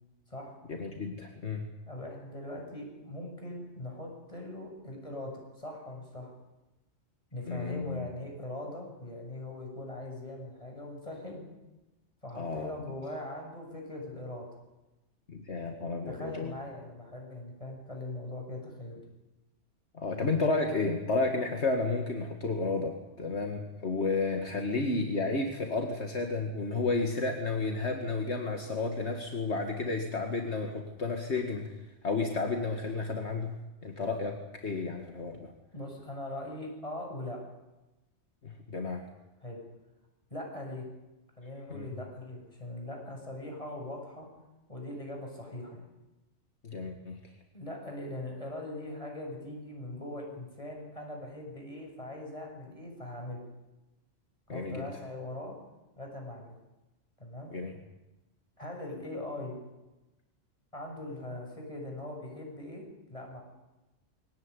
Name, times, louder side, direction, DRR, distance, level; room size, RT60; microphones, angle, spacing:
voice 1, 0.7-1.7 7.5-8.0 12.4-12.9 15.3-16.5 19.9-31.7 32.0-33.5 33.8-35.5 38.4-39.0 41.7-41.9 46.6-47.2 54.5-54.9 57.5-57.7, left 3 dB, 70° left, 3 dB, 2.2 m, -32 dB
voice 2, 1.9-6.3 7.3-11.5 12.2-14.5 16.1-19.0 35.7-37.4 39.4-39.6 40.3-40.9 41.4-44.3 44.7-45.9 47.5-53.4 54.5-55.5 56.0-56.6 57.2-57.5 58.6-59.6 60.7-63.4, left 1 dB, 30° left, 0 dB, 7.4 m, -41 dB
22.0 x 18.0 x 9.8 m, 1.0 s
omnidirectional pair, 1.2 m